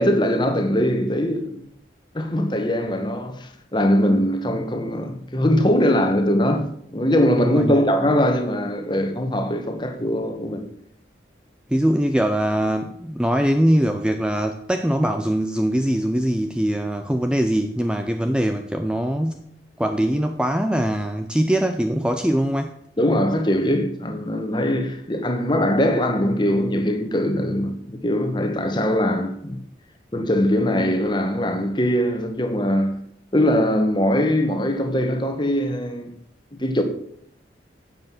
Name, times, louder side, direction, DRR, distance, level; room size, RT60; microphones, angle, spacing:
voice 1, 0.0-1.6 2.1-10.7 23.0-29.6 30.1-33.0 33.3-36.1 36.6-36.8, equal, 25° left, 1.5 m, -21 dB
voice 2, 7.4-7.8 11.7-19.4 19.8-22.8, equal, 5° right, 0.5 m, -22 dB
10.5 x 7.8 x 7.6 m
head